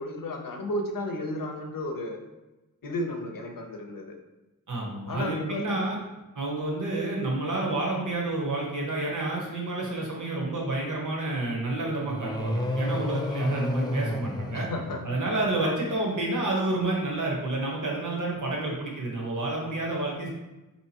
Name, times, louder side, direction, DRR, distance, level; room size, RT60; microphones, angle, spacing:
voice 1, 0.0-2.2 2.8-4.2 5.1-5.7 14.5-15.0 15.6-15.7, left 1 dB, 70° left, 3 dB, 0.7 m, -33 dB
voice 2, 4.7-6.0 6.3-14.7 15.0-20.3, right 2 dB, 60° right, -2 dB, 1.0 m, -29 dB
sound 1, 12.1-15.4, left 1 dB, 10° left, 0.4 m, -31 dB
4.5 x 2.8 x 2.8 m, 1.0 s
wide cardioid pair, 90°, 35 cm